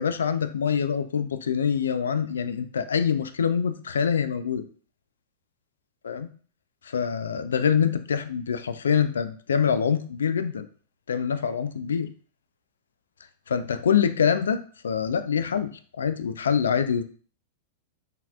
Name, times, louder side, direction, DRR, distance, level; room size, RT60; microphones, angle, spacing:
voice 1, 0.0-4.7 6.0-6.3 6.8-10.7 11.1-12.1 13.5-15.7 16.0-17.0, left 7 dB, 75° left, 11 dB, 0.4 m, -25 dB
5.7 x 2.8 x 2.4 m, 0.43 s
figure-of-eight pair, 95°, 0 cm